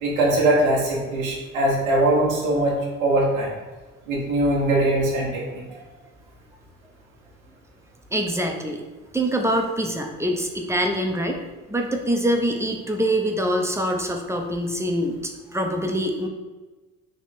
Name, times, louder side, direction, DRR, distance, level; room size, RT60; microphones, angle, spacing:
voice 1, 0.0-3.5 4.1-5.6, right 1 dB, 80° right, -4 dB, 1.1 m, -21 dB
voice 2, 8.1-8.8 9.1-11.4 11.7-16.3, equal, 5° right, 2 dB, 0.6 m, -24 dB
3.6 x 2.9 x 4.1 m, 1.2 s
hypercardioid pair, 50°, 40 cm